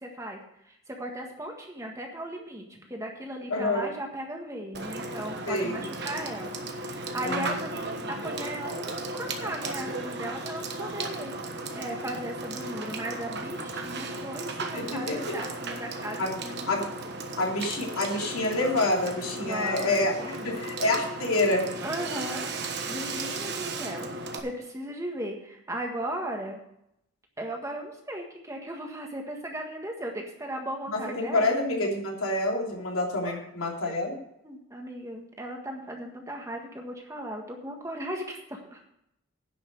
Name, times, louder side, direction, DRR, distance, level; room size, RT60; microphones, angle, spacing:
voice 1, 0.0-0.4 0.7-6.5 6.8-7.8 8.1-11.3 11.7-17.2 19.4-19.9 20.2-20.5 21.8-24.1 24.4-26.6 27.4-31.5 33.2-33.4 33.9-34.0 34.4-38.8, right 1 dB, 15° right, 2 dB, 1.6 m, -37 dB
voice 2, 3.5-3.9 5.4-5.8 7.2-7.6 14.7-15.3 16.2-16.3 16.7-16.9 17.4-21.7 30.9-34.2, left 2 dB, 90° left, -1 dB, 3.2 m, -27 dB
Water / Water tap faucet / Sink (filling or washing), 4.7-24.4, right 2 dB, 55° right, 1.3 m, -35 dB
10.5 x 6.2 x 7.7 m, 0.78 s
head